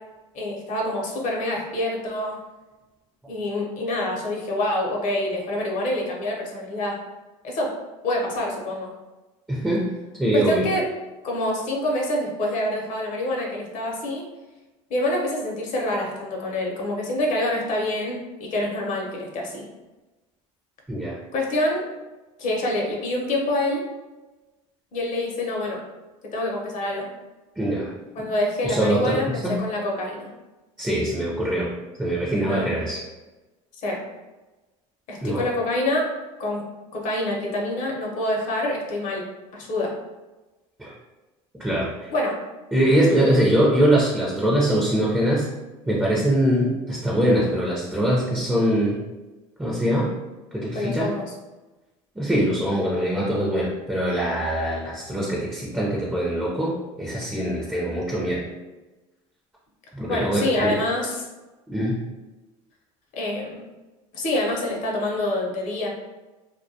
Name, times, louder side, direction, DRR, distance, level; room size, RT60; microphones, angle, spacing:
voice 1, 0.3-2.4 3.3-7.0 7.4-7.7 8.0-8.9 10.3-10.9 11.2-14.2 14.9-19.6 21.3-21.8 22.4-23.8 24.9-25.8 26.3-27.1 28.2-30.3 32.5-32.7 33.8-34.0 35.1-36.1 36.4-36.6 36.9-39.2 39.5-39.9 42.1-42.4 50.7-51.2 60.1-61.2 63.1-63.6 64.1-65.9, left 1 dB, 50° left, -1 dB, 0.7 m, -26 dB
voice 2, 9.5-9.9 10.2-10.7 20.9-21.2 27.6-27.9 28.6-29.6 30.8-31.7 32.0-33.0 35.2-35.4 40.8-40.9 41.6-42.1 42.7-45.5 45.8-49.0 49.6-50.1 50.5-51.1 52.2-58.4 59.9-60.8 61.7-62.0, right 1 dB, 5° right, -5 dB, 0.5 m, -23 dB
2.2 x 2.2 x 2.7 m, 1.1 s
supercardioid pair, 90°, 16 cm